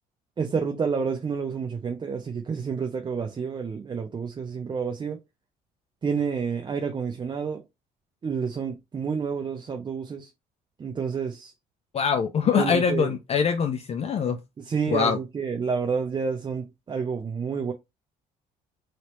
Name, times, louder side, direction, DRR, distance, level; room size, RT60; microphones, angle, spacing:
voice 1, 0.4-5.2 6.0-7.7 8.2-10.3 10.8-11.5 12.4-13.1 14.6-17.7, right 5 dB, 25° right, 0.5 m, -29 dB
voice 2, 11.9-14.4 14.9-15.2, left 7 dB, 35° left, 0.4 m, -23 dB
3.1 x 2.8 x 2.9 m
cardioid pair, 110°, 17 cm